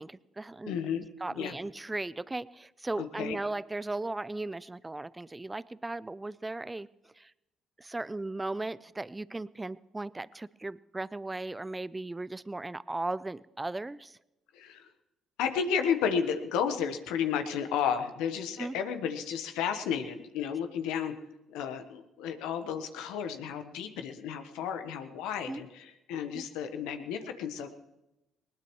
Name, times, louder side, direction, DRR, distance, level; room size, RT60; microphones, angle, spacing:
voice 1, 0.0-0.8 1.2-6.9 7.2-7.3 7.8-14.2 18.6-18.7 25.5-25.6 26.3-26.4, right 2 dB, 20° right, 19 dB, 0.5 m, -37 dB
voice 2, 0.7-1.0 1.3-1.6 3.0-3.4 14.5-14.9 15.4-21.1 21.5-27.7, left 7 dB, 80° left, 8 dB, 1.2 m, -32 dB
20.0 x 19.0 x 3.2 m, 0.93 s
supercardioid pair, 60°, 0 cm